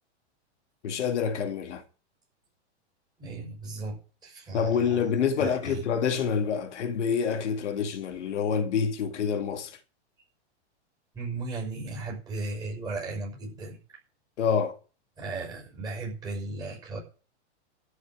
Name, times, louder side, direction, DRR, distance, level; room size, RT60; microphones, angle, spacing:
voice 1, 0.8-1.8 4.5-9.8 14.4-14.8, left 6 dB, 80° left, 2.2 m, -27 dB
voice 2, 3.2-5.0 5.4-5.8 11.1-13.8 15.2-17.0, right 3 dB, 10° right, 5.6 m, -36 dB
13.5 x 6.0 x 8.8 m
supercardioid pair, 170°, 35 cm